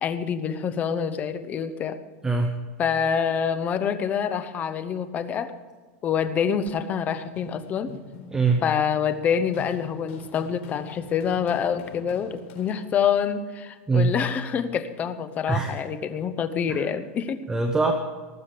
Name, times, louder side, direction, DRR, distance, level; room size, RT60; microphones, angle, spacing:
voice 1, 0.0-2.0 2.8-5.5 6.0-7.9 8.6-17.4, left 7 dB, 20° left, 11 dB, 0.8 m, -26 dB
voice 2, 2.2-2.5 8.3-8.6 13.9-14.1 15.5-15.7 17.5-17.9, right 4 dB, 10° right, 5 dB, 0.8 m, -22 dB
Run, 6.8-13.1, left 5 dB, 60° left, 4.3 m, -45 dB
18.5 x 7.2 x 6.6 m, 1.4 s
supercardioid pair, 165°, 7 cm